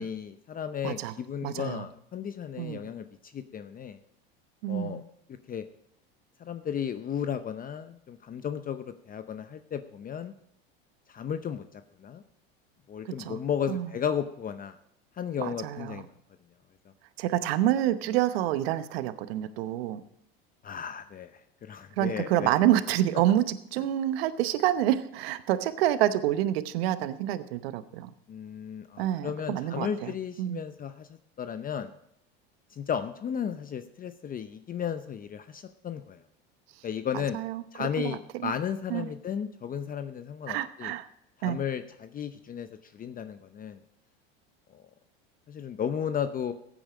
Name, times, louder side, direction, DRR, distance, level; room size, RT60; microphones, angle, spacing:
voice 1, 0.0-4.0 4.7-5.0 5.5-5.6 6.4-10.3 11.1-12.2 12.9-14.7 15.2-16.1 20.6-21.3 21.6-22.5 28.3-31.9 32.7-36.2 36.8-37.4 37.7-40.9 41.4-43.8 44.7-44.8 45.5-46.5, left 8 dB, 30° left, 10 dB, 0.7 m, -34 dB
voice 2, 0.8-1.2 1.4-1.9 2.6-2.8 4.6-5.0 13.0-13.4 13.7-13.9 15.4-16.0 17.2-20.0 22.0-28.1 29.0-30.1 30.4-30.6 37.3-38.5 38.9-39.1 40.5-41.1 41.4-41.6, right 13 dB, 75° right, 12 dB, 1.0 m, -28 dB
15.5 x 9.0 x 5.0 m, 0.75 s
supercardioid pair, 105°, 30 cm